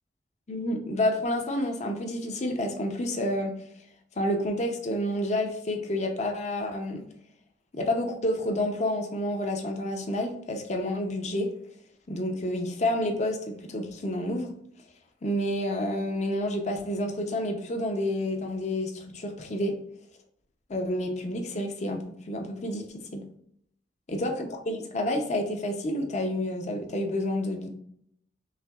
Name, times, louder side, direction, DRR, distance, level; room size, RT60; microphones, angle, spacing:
voice 1, 0.5-3.5 4.2-7.0 7.7-11.5 12.1-14.5 15.2-19.7 20.7-23.2 24.1-27.7, left 1 dB, 40° left, 4 dB, 0.6 m, -29 dB
5.7 x 2.6 x 2.4 m, 0.69 s
head